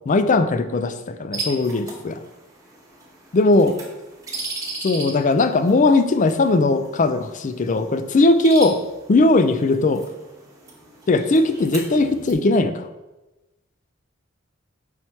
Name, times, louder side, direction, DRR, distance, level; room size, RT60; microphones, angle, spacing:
voice 1, 0.1-2.2 3.3-3.8 4.8-8.8 9.1-10.0 11.1-12.9, left 2 dB, 35° left, 10 dB, 0.4 m, -18 dB
sound 1, 1.3-12.3, right 3 dB, 15° right, 1.0 m, -37 dB
5.6 x 4.6 x 4.4 m, 1.1 s
head